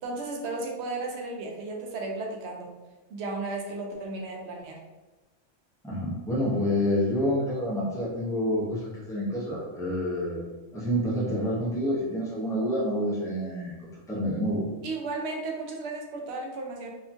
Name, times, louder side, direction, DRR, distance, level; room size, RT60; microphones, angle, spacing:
voice 1, 0.0-2.7 3.1-4.8 14.8-16.9, right 3 dB, 70° right, 1 dB, 0.8 m, -34 dB
voice 2, 5.8-10.4 10.7-13.8 14.1-14.7, equal, 5° left, -6 dB, 0.4 m, -28 dB
2.8 x 2.3 x 2.5 m, 1.1 s
omnidirectional pair, 1.3 m